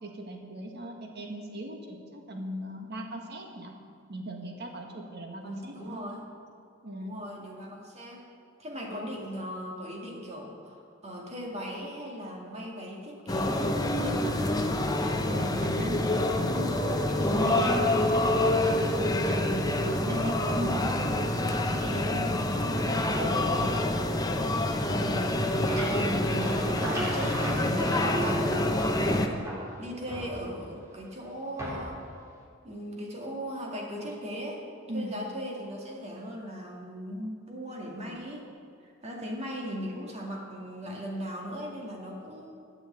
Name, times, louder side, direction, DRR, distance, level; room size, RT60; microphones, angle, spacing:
voice 1, 0.0-3.7 4.1-6.0 6.8-7.1 8.9-9.1 15.3-18.9 19.3-23.8 34.9-35.2, equal, 55° right, 2 dB, 1.7 m, -39 dB
voice 2, 5.4-6.2 7.0-8.2 8.6-14.4 24.9-25.4 25.9-29.4 29.8-32.0 32.6-34.6 34.9-38.4 38.8-42.5, equal, 30° right, -1 dB, 2.1 m, -38 dB
sound 1, 13.3-29.3, left 1 dB, 20° left, 0.8 m, -27 dB
sound 2, 25.4-29.1 29.4-30.8 31.6-32.1, equal, 15° right, 2.7 m, -38 dB
12.5 x 7.0 x 8.8 m, 2.3 s
head